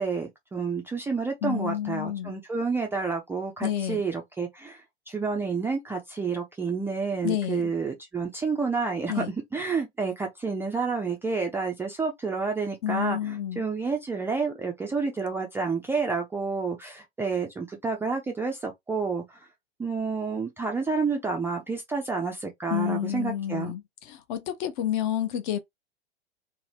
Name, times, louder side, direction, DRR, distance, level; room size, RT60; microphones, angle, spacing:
voice 1, 0.0-4.8 5.1-9.3 9.5-19.5 19.8-23.7, right 4 dB, 5° right, 0.4 m, -29 dB
voice 2, 1.4-2.3 3.6-4.0 7.2-7.7 9.1-9.3 12.8-13.6 22.7-25.6, left 11 dB, 45° left, 0.8 m, -29 dB
2.7 x 2.1 x 3.3 m
figure-of-eight pair, 100°, 32 cm